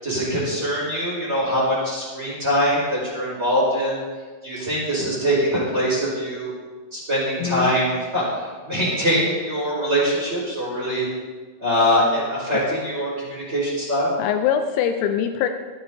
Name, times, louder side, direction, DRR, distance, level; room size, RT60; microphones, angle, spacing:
voice 1, 0.0-4.0 4.4-6.5 6.9-11.1 11.6-14.1, equal, 15° right, -7 dB, 4.5 m, -23 dB
voice 2, 7.4-7.7 12.5-12.6 14.2-15.5, left 9 dB, 80° left, 6 dB, 2.9 m, -23 dB
25.5 x 8.8 x 2.8 m, 1.5 s
omnidirectional pair, 5.5 m